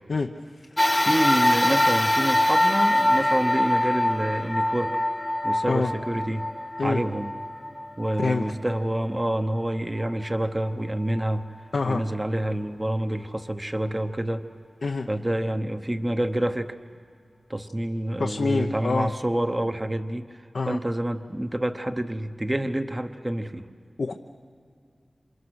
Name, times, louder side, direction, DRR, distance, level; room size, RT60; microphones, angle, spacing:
sound 1, 0.8-9.4 10.0-10.1 11.2-11.3, left 1 dB, 15° left, 0.7 m, -24 dB
voice 1, 0.9-5.0 5.4-6.5 6.8-7.3 8.0-11.5 11.8-14.5 15.1-16.8 17.5-23.7, right 1 dB, 20° right, 8 dB, 0.9 m, -28 dB
voice 2, 11.7-12.0 14.8-15.1 18.2-19.1 20.5-20.8 24.0-24.1, left 3 dB, 85° left, 2 dB, 0.9 m, -25 dB
28.5 x 26.5 x 6.4 m, 2.3 s
wide cardioid pair, 85°, 0 cm